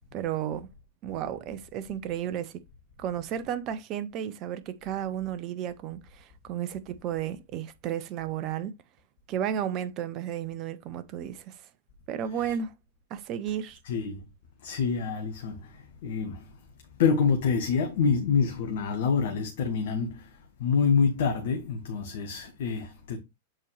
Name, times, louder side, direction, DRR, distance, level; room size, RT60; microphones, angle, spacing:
voice 1, 0.1-0.7 1.0-2.6 3.0-8.7 9.3-11.6 12.1-12.7 13.1-13.8, right 9 dB, 40° right, 1.0 m, -33 dB
voice 2, 13.8-14.2 14.6-16.5 17.0-23.2, left 5 dB, 60° left, 1.4 m, -27 dB
7.8 x 4.6 x 3.2 m
figure-of-eight pair, 95°, 0 cm